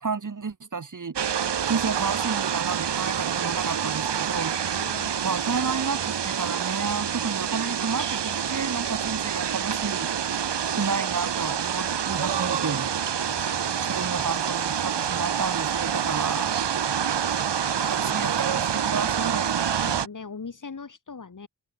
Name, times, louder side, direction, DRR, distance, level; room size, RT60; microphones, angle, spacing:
voice 1, 0.0-1.2 1.7-4.6 5.2-10.1 10.7-12.9 13.8-16.7 17.8-19.6, right 5 dB, 40° right, 2.0 m, -31 dB
sound 1, 1.2-20.1, right 8 dB, 65° right, 1.3 m, -27 dB
voice 2, 4.7-5.3 17.8-18.1 19.9-21.5, left 5 dB, 45° left, 2.6 m, -41 dB
sound 2, 10.4-18.2, left 7 dB, 85° left, 3.7 m, -53 dB
open air
wide cardioid pair, 120°, 45 cm